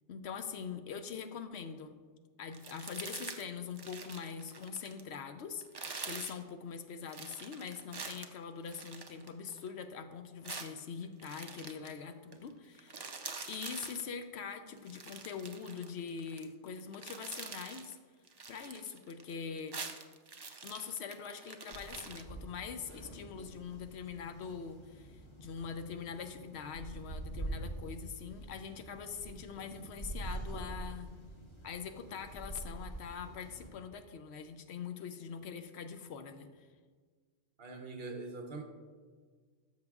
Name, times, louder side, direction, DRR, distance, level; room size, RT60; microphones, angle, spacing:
voice 1, 0.1-2.0 2.4-13.0 13.5-18.0 18.5-19.8 20.6-31.1 31.6-36.7, left 6 dB, 70° left, 8 dB, 0.8 m, -43 dB
sound 1, 2.5-3.4 3.7-5.1 5.6-6.4 7.1-9.7 10.4-11.9 12.3-12.5 12.7-14.0 14.8-16.4 16.8-17.9 18.3-19.3 19.6-22.2, right 4 dB, 40° right, 0.3 m, -45 dB
sound 2, 21.7-33.7, right 1 dB, 25° left, 1.0 m, -45 dB
voice 2, 37.6-38.6, right 3 dB, 60° right, 3 dB, 1.1 m, -43 dB
13.0 x 6.5 x 2.4 m, 1.5 s
omnidirectional pair, 1.2 m